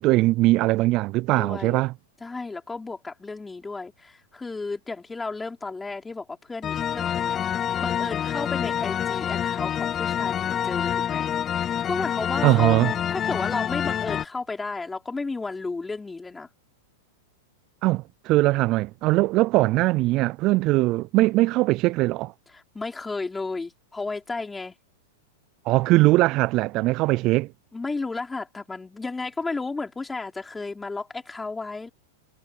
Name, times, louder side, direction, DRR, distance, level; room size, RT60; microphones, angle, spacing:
voice 1, 0.0-1.9 12.4-12.9 17.8-22.3 25.6-27.5, right 19 dB, 45° right, 0.4 m, -21 dB
voice 2, 1.4-1.8 2.2-11.3 11.6-12.8 13.1-16.5 22.5-24.7 27.7-31.9, left 3 dB, 10° left, 4.3 m, -33 dB
sound 1, 6.6-14.3, left 9 dB, 25° left, 0.7 m, -27 dB
hypercardioid pair, 115°, 0 cm